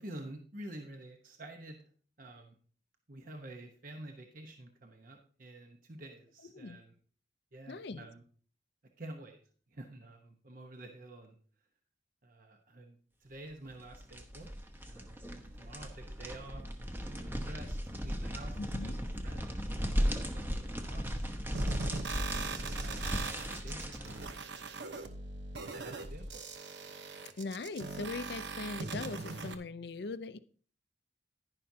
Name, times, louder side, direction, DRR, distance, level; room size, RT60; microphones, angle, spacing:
voice 1, 0.0-1.8 2.2-2.5 3.1-6.9 7.5-8.2 9.0-9.4 9.7-11.3 12.2-14.5 14.9-16.6 17.1-17.8 18.0-21.7 22.3-24.8 25.7-26.4, right 1 dB, 50° right, 1.0 m, -49 dB
voice 2, 7.7-8.1 18.6-19.0 27.4-30.4, left 3 dB, 65° left, 0.5 m, -40 dB
sound 1, 13.7-24.4, equal, 10° right, 1.0 m, -36 dB
sound 2, 21.5-29.5, right 3 dB, 75° right, 1.0 m, -41 dB
11.0 x 10.5 x 2.8 m
head